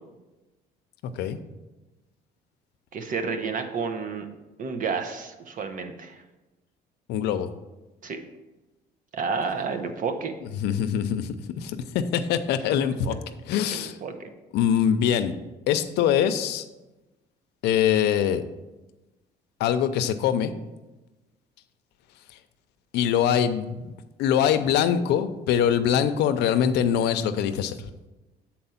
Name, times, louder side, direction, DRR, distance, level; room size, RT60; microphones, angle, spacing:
voice 1, 2.9-4.3 4.6-6.2 8.0-8.2 9.1-10.3 13.7-14.3, right 5 dB, 50° right, 7 dB, 0.9 m, -30 dB
voice 2, 7.1-7.5 10.6-13.1 13.5-14.0 14.5-15.3 15.7-16.7 17.6-18.4 19.6-20.5 22.9-23.9 24.2-27.8, left 9 dB, 80° left, 10 dB, 0.6 m, -23 dB
7.7 x 4.3 x 5.7 m, 1.1 s
cardioid pair, 110°, 17 cm